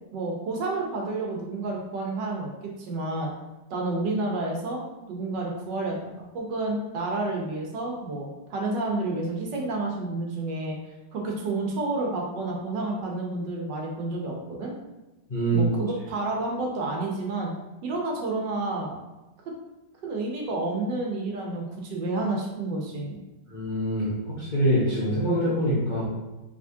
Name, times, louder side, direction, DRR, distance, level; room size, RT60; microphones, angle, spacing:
voice 1, 0.1-3.3 3.7-4.8 5.1-10.8 11.1-14.7 15.5-17.5 17.8-19.0 19.5-19.6 20.0-23.1, right 2 dB, 75° right, -1 dB, 1.5 m, -30 dB
voice 2, 15.3-15.7 23.5-26.0, right 1 dB, 45° left, -8 dB, 0.6 m, -24 dB
4.9 x 3.0 x 2.7 m, 1.1 s
omnidirectional pair, 2.0 m